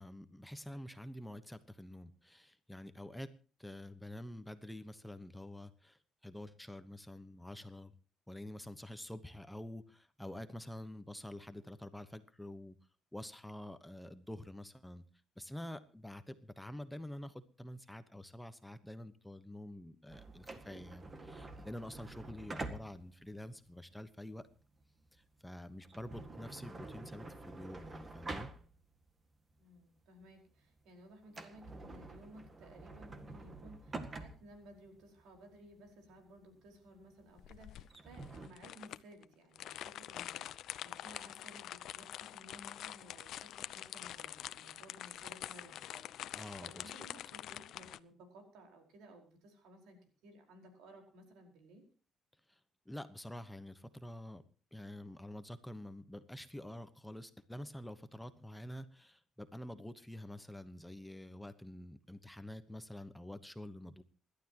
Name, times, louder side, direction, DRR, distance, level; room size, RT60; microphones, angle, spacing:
voice 1, 0.0-3.3 3.6-7.9 8.3-12.8 13.1-15.0 15.4-24.5 25.1-28.5 46.3-46.8 52.5-52.6 52.9-54.4 54.7-64.0, left 1 dB, 5° left, 10 dB, 1.1 m, -48 dB
sound 1, 20.1-29.1 29.5-29.6 30.2-30.5 30.8-30.9 31.2-38.5, right 3 dB, 30° right, 1.8 m, -48 dB
voice 2, 29.6-46.1 46.6-47.2 47.5-51.8, right 1 dB, 90° right, 3 dB, 4.9 m, -57 dB
sound 2, 37.4-48.0, left 12 dB, 70° left, 0.6 m, -46 dB
27.0 x 12.0 x 3.0 m, 0.37 s
cardioid pair, 115°, 0 cm